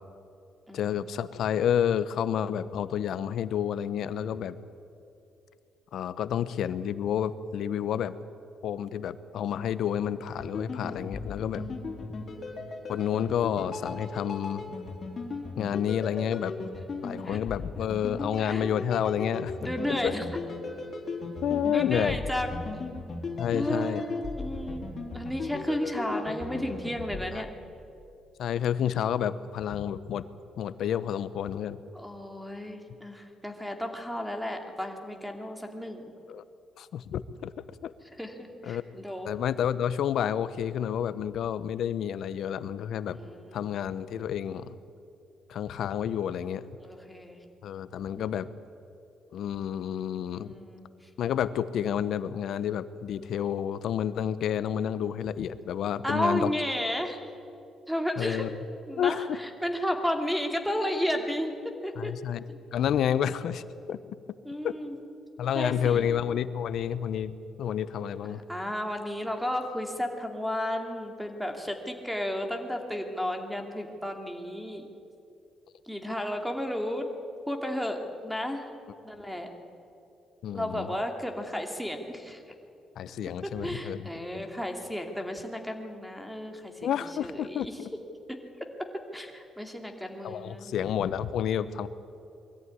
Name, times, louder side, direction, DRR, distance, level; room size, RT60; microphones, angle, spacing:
voice 1, 0.7-4.6 5.9-8.1 8.6-11.7 12.9-14.7 15.6-16.5 17.0-19.5 20.0-20.1 21.4-22.2 23.4-24.0 27.3-27.4 28.4-30.3 30.6-31.8 36.3-36.4 36.8-37.5 37.8-37.9 38.6-38.8 39.2-43.2 43.5-44.7 45.5-46.6 47.6-48.5 49.3-50.5 51.2-56.5 58.2-58.6 59.0-59.4 62.0-62.4 62.7-64.0 64.6-64.7 65.4-68.4 80.4-80.9 83.0-84.5 86.8-87.9 90.2-91.9, left 9 dB, 70° left, 15 dB, 0.9 m, -30 dB
sound 1, 10.4-27.2, left 3 dB, 40° left, 3.9 m, -37 dB
voice 2, 11.5-12.0 17.2-17.4 18.4-18.6 19.6-20.3 21.7-22.6 23.5-27.5 31.9-36.0 38.2-39.3 43.1-43.7 46.8-47.4 50.4-50.9 56.0-57.2 57.9-58.5 58.9-62.1 62.5-62.6 64.4-65.0 65.5-66.1 68.5-74.9 75.9-77.1 77.5-78.7 79.0-79.5 80.5-82.4 83.4-86.9 87.2-87.7 88.3-90.8, equal, ahead, 4 dB, 2.6 m, -33 dB
22.0 x 14.0 x 9.7 m, 2.6 s
cardioid pair, 90°, 0 cm